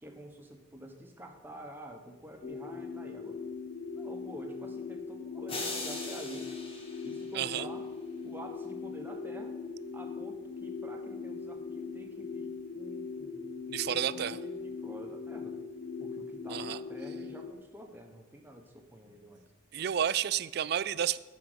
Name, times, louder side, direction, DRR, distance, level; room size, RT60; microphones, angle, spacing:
voice 1, 0.0-3.4 3.9-6.5 7.0-7.8 8.2-9.5 9.9-13.4 13.9-15.6 16.0-19.4, right 1 dB, 10° right, 2 dB, 1.1 m, -48 dB
sound 1, 2.4-17.5, left 4 dB, 50° left, 0.9 m, -40 dB
sound 2, 5.5-7.8, left 2 dB, 30° left, 1.6 m, -40 dB
voice 2, 7.3-7.7 13.7-14.4 16.5-16.8 19.7-21.2, right 9 dB, 55° right, 17 dB, 0.3 m, -31 dB
10.5 x 6.3 x 8.0 m, 1.2 s
head